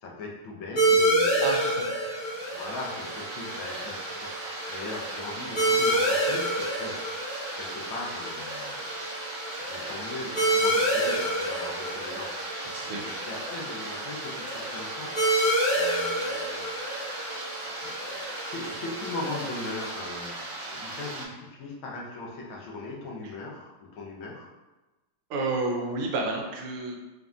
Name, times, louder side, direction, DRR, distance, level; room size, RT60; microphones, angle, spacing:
voice 1, 0.0-1.6 2.2-9.0 9.6-15.1 15.7-16.7 17.8-24.5, left 2 dB, 75° left, -2 dB, 1.5 m, -40 dB
sound 1, 0.8-19.9, right 1 dB, 50° left, 1.2 m, -29 dB
voice 2, 1.4-2.5 12.8-13.0 23.2-23.3 25.3-27.0, right 2 dB, 85° right, 1 dB, 1.6 m, -31 dB
sound 2, 2.0-21.2, right 2 dB, 40° right, 0.4 m, -38 dB
5.5 x 2.6 x 2.4 m, 1.1 s
omnidirectional pair, 2.4 m